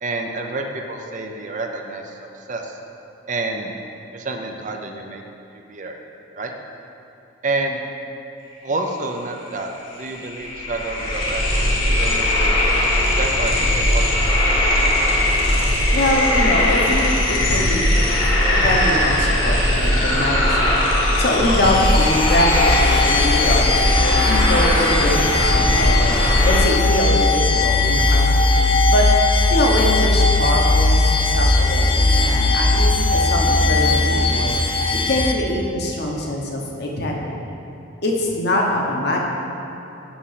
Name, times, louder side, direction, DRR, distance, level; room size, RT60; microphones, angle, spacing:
voice 1, 0.0-2.8 3.3-3.7 4.1-5.2 5.5-6.0 6.3-6.5 7.4-7.8 8.6-12.6 13.2-14.7, right 2 dB, 40° right, 3 dB, 0.5 m, -29 dB
sound 1, 9.6-9.7 9.9-26.6, left 1 dB, 75° left, 1.6 m, -19 dB
voice 2, 15.9-17.1 17.5-29.1 29.5-34.6 34.9-37.5 38.0-39.2, left 1 dB, 55° left, -1 dB, 1.0 m, -23 dB
sound 2, 21.6-35.3, left 3 dB, 25° left, 0.4 m, -18 dB
6.2 x 6.0 x 5.7 m, 2.9 s
head